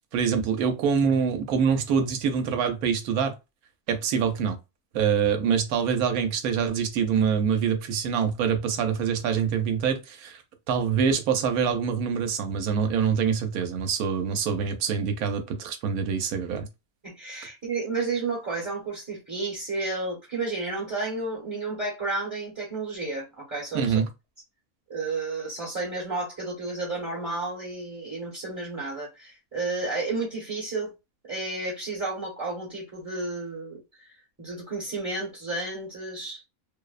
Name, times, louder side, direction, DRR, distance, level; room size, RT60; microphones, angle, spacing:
voice 1, 0.1-3.3 3.9-4.6 4.9-10.4 10.7-16.7 23.7-24.1, right 7 dB, 90° right, 1.1 m, -25 dB
voice 2, 17.0-24.0 24.9-30.9 31.3-34.1 34.4-36.4, right 3 dB, 15° right, 0.8 m, -32 dB
2.6 x 2.0 x 2.3 m
omnidirectional pair, 1.5 m